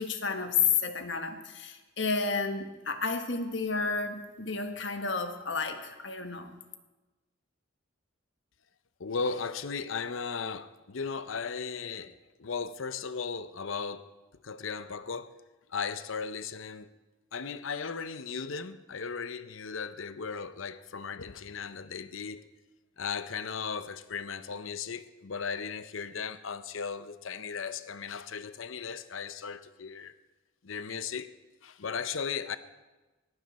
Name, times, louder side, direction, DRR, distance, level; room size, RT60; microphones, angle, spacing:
voice 1, 0.0-6.5, left 5 dB, 60° left, 1.6 m, -31 dB
voice 2, 9.0-14.1 14.4-15.3 15.7-16.9 17.3-22.5 23.0-30.1 30.6-31.3 31.6-32.6, left 5 dB, 75° left, 0.7 m, -36 dB
19.5 x 15.5 x 4.2 m
head